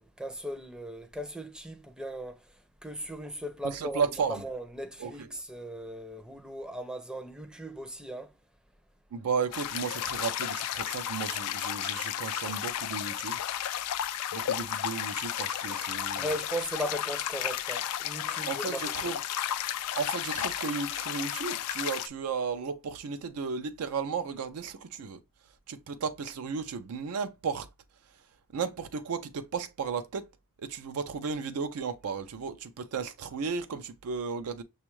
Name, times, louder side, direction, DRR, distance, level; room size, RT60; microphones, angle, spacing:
voice 1, 0.2-2.4 2.8-8.3 16.2-19.1, equal, 5° right, 0.5 m, -38 dB
voice 2, 3.6-4.4 5.0-5.3 9.1-13.4 14.3-16.3 18.5-19.2 19.9-25.2 25.7-27.7 28.5-30.3 30.6-34.6, right 5 dB, 75° right, 0.4 m, -34 dB
sound 1, 9.5-22.1, left 11 dB, 85° left, 0.4 m, -33 dB
6.1 x 2.3 x 3.0 m
head